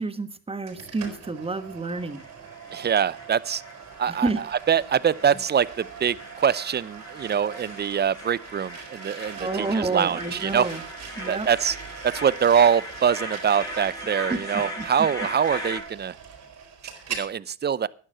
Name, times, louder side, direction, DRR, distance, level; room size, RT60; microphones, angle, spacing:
voice 1, 0.0-2.2 4.1-4.4 9.4-10.8 11.2-11.5 14.3-14.9, right 3 dB, 20° right, 12 dB, 1.3 m, -29 dB
sound 1, 0.7-17.3, right 6 dB, 60° right, 5.6 m, -42 dB
sound 2, 2.0-15.8, left 1 dB, 10° left, 5.0 m, -39 dB
voice 2, 2.7-3.6 4.0-4.3 4.7-10.7 11.3-11.8 12.0-16.2 17.1-17.9, right 8 dB, 35° right, 21 dB, 0.6 m, -24 dB
11.5 x 10.0 x 5.6 m, 0.39 s
cardioid pair, 90°, 30 cm